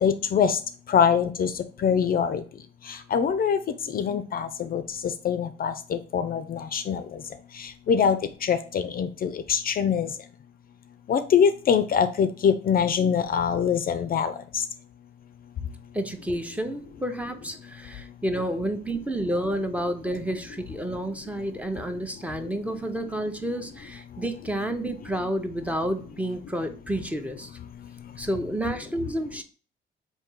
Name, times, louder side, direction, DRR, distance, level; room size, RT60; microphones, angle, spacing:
voice 1, 0.0-0.6 0.9-1.5 1.8-2.4 3.1-3.6 3.9-4.8 5.2-7.0 7.9-10.1 11.1-14.6, left 7 dB, 50° left, 10 dB, 0.4 m, -23 dB
voice 2, 15.9-27.5 28.2-29.4, right 1 dB, 5° right, 6 dB, 0.6 m, -30 dB
3.6 x 2.7 x 4.4 m, 0.40 s
cardioid pair, 90°, 20 cm